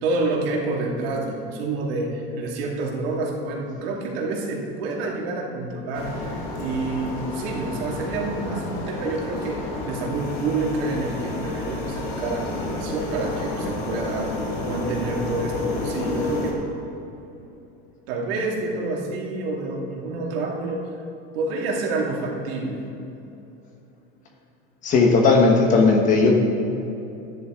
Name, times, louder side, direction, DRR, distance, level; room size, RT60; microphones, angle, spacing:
voice 1, 0.0-16.6 18.1-20.8 21.3-22.8, right 3 dB, 80° right, -2 dB, 2.3 m, -28 dB
sound 1, 5.9-16.5, left 2 dB, 65° left, 2.0 m, -30 dB
voice 2, 24.8-26.3, left 3 dB, 25° left, 1 dB, 1.2 m, -16 dB
13.5 x 10.5 x 3.7 m, 2.9 s
cardioid pair, 180°, 29 cm